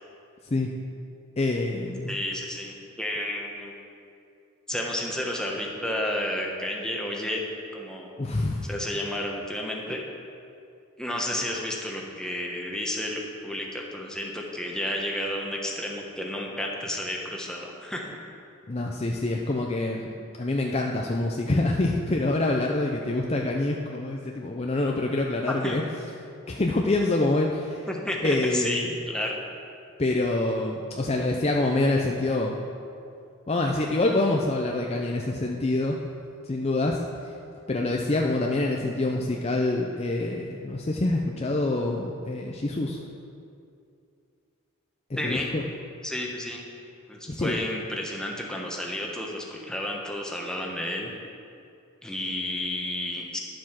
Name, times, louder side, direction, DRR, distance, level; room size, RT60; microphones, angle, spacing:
voice 1, 1.4-2.1 8.2-8.7 18.7-20.1 20.4-25.8 26.5-27.9 28.2-28.9 30.0-32.6 33.5-36.0 36.5-37.0 37.7-43.0 45.2-45.6 47.3-47.6, left 2 dB, 30° left, 0 dB, 0.5 m, -26 dB
voice 2, 2.1-3.7 4.7-7.5 7.7-8.2 8.7-10.0 11.0-18.2 25.6-25.8 27.9-29.3 45.2-45.5 46.0-46.6 47.1-51.1 52.0-53.4, left 1 dB, 5° left, -1 dB, 1.1 m, -31 dB
11.0 x 7.7 x 5.8 m, 2.5 s
head